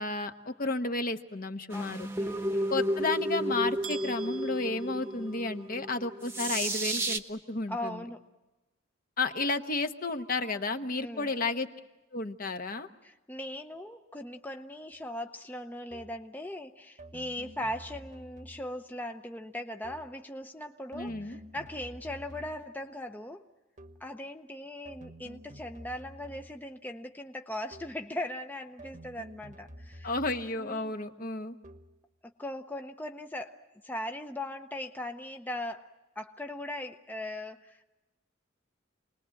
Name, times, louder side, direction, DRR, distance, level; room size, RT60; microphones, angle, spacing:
voice 1, 0.0-2.1 2.7-8.0 9.2-11.7 12.1-12.9 20.9-21.4 30.0-31.6, left 3 dB, 45° left, 7 dB, 1.1 m, -32 dB
voice 2, 1.7-2.7 7.7-8.2 11.0-11.3 13.0-23.4 24.0-30.1 30.6-30.9 32.4-33.6 33.8-35.9 36.2-37.8, left 1 dB, 10° left, 5 dB, 0.7 m, -39 dB
sound 1, 1.7-7.2, right 1 dB, 10° right, 1.1 m, -32 dB
sound 2, 3.8-5.8, right 7 dB, 80° right, 1.1 m, -46 dB
sound 3, 15.9-16.3 17.0-18.9 19.8-20.3 20.9-22.8 23.8-24.2 24.9-26.8 27.7-28.1 28.8-30.7 31.6-32.1, equal, 40° right, 1.1 m, -50 dB
27.5 x 20.5 x 7.7 m, 1.1 s
head